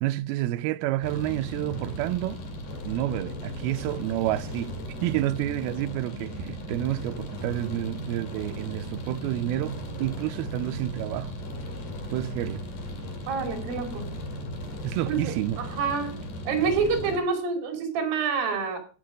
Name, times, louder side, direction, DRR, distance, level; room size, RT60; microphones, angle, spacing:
voice 1, 0.0-2.4 2.9-4.7 5.0-11.3 12.1-12.6 14.8-15.6, right 15 dB, 80° right, 2.3 m, -29 dB
sound 1, 1.0-17.2, equal, 50° left, 3.8 m, -37 dB
voice 2, 13.3-14.1 15.1-16.2 16.5-18.8, right 5 dB, 55° right, 4.4 m, -27 dB
17.5 x 6.3 x 5.1 m
omnidirectional pair, 5.0 m